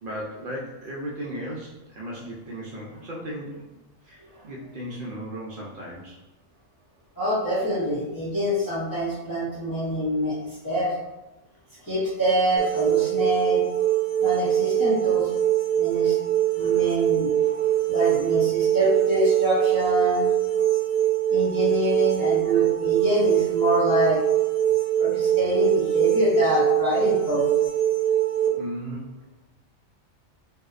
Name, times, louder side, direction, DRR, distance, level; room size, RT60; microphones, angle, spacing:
voice 1, 0.0-3.6 4.0-6.2 28.6-29.0, equal, 60° right, -4 dB, 0.6 m, -36 dB
voice 2, 7.2-10.9 11.8-13.6 14.2-15.3 15.7-16.2 16.5-20.2 21.3-24.2 25.0-27.5, equal, 25° left, -10 dB, 0.5 m, -25 dB
sound 1, 12.6-28.5, right 11 dB, 65° left, 0.9 m, -23 dB
2.7 x 2.0 x 2.3 m, 1.0 s
omnidirectional pair, 1.2 m